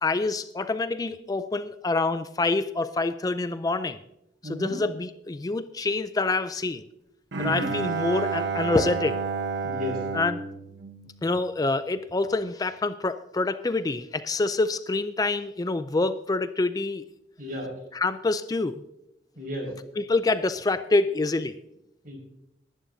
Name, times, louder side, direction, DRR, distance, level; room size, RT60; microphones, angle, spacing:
voice 1, 0.0-4.0 4.4-6.8 7.4-9.2 10.1-10.4 11.2-17.0 17.9-18.8 20.0-21.6, left 3 dB, 20° left, 12 dB, 0.4 m, -26 dB
voice 2, 4.4-4.8 7.3-7.7 9.6-10.0 17.4-17.7 19.4-19.7 22.0-22.2, equal, 55° right, 2 dB, 5.5 m, -33 dB
Bowed string instrument, 7.3-11.7, right 5 dB, 90° right, 1.1 m, -31 dB
20.5 x 11.0 x 2.7 m, 0.82 s
head